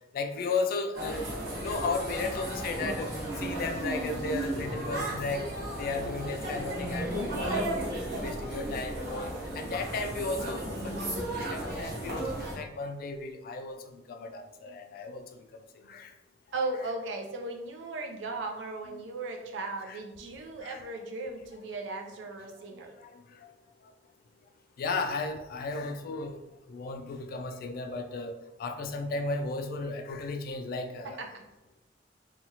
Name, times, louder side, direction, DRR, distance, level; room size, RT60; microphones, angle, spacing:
voice 1, 0.1-1.3 1.6-5.4 5.8-7.7 8.2-15.2 15.7-16.1 19.9-20.0 20.6-20.8 23.0-23.4 23.8-23.9 24.8-26.4 26.7-31.2, left 3 dB, 55° left, 6 dB, 0.3 m, -35 dB
sound 1, 0.9-12.6, right 1 dB, 60° right, 0.9 m, -34 dB
voice 2, 16.5-23.0 31.0-31.4, right 2 dB, 80° right, 3 dB, 0.5 m, -37 dB
2.9 x 2.3 x 2.8 m, 0.97 s
head